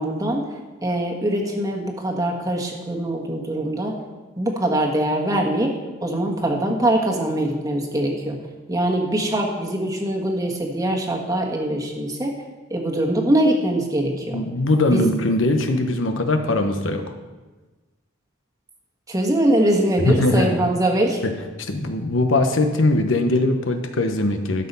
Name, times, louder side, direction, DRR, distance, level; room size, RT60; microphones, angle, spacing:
voice 1, 0.0-3.9 4.4-8.4 8.7-12.3 12.7-14.4 14.8-15.1 19.1-21.2, right 1 dB, 20° right, 0 dB, 1.5 m, -22 dB
voice 2, 14.3-17.0 20.0-20.5 21.6-24.7, left 2 dB, 70° left, 7 dB, 1.1 m, -20 dB
12.0 x 6.8 x 5.5 m, 1.3 s
head